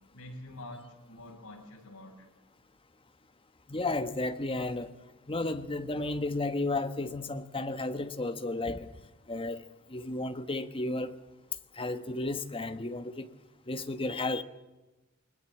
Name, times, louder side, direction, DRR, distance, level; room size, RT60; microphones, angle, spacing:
voice 1, 0.1-2.3, left 1 dB, 80° left, 7.1 m, -46 dB
voice 2, 3.7-4.9 5.3-8.9 9.3-9.6 9.9-11.2 11.7-13.3 13.7-14.4, left 2 dB, 25° left, 1.2 m, -33 dB
22.0 x 20.5 x 7.2 m
head